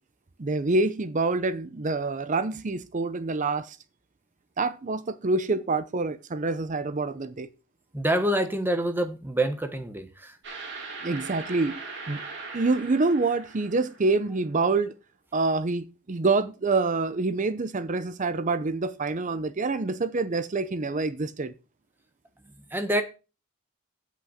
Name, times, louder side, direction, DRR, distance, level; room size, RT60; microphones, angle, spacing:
voice 1, 0.4-3.8 4.6-7.5 11.0-11.8 12.1-12.2 12.5-14.9 15.3-21.5, right 3 dB, 35° right, 0.6 m, -26 dB
voice 2, 7.9-10.4 22.7-23.0, right 1 dB, 10° right, 1.2 m, -26 dB
sound 1, 10.4-14.3, right 4 dB, 55° right, 2.9 m, -40 dB
8.0 x 6.2 x 6.4 m
head